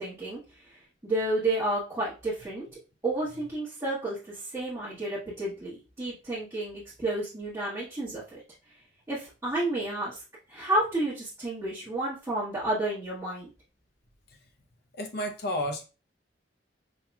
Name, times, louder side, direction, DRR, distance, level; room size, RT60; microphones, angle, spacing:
voice 1, 0.0-2.6 3.0-8.4 9.1-10.2 10.5-13.5, right 1 dB, 15° right, -10 dB, 1.2 m, -31 dB
voice 2, 14.9-15.8, equal, 60° left, 3 dB, 0.7 m, -32 dB
5.2 x 2.8 x 2.3 m, 0.32 s
head